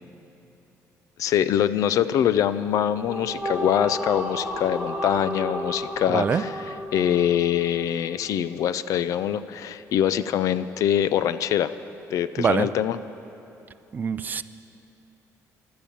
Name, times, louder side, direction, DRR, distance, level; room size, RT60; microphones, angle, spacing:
voice 1, 1.2-6.6 6.9-11.7 12.1-13.0, left 10 dB, 65° left, 14 dB, 0.5 m, -24 dB
sound 1, 2.9-8.2, equal, ahead, 3.2 m, -33 dB
voice 2, 6.1-6.4 12.4-12.7 13.9-14.4, right 6 dB, 30° right, 13 dB, 0.4 m, -24 dB
15.5 x 12.0 x 7.1 m, 2.9 s
cardioid pair, 145°, 6 cm